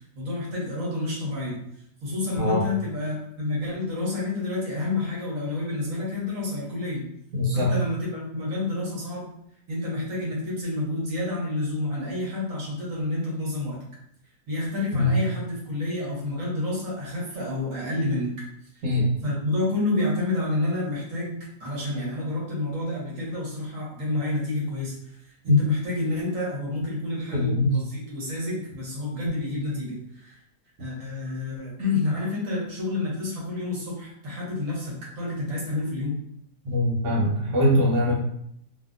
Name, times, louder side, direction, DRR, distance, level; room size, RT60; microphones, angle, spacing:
voice 1, 0.0-1.6 2.0-7.1 7.5-9.3 9.7-13.8 14.5-18.4 18.8-18.9 19.2-30.4 30.8-36.2 38.1-38.2, left 2 dB, 55° right, -5 dB, 1.3 m, -29 dB
voice 2, 7.3-7.7 14.9-15.2 18.8-19.2 25.5-25.6 27.3-27.7 36.6-38.1, left 1 dB, 80° right, -4 dB, 1.5 m, -22 dB
2.8 x 2.7 x 2.4 m, 0.73 s
omnidirectional pair, 1.8 m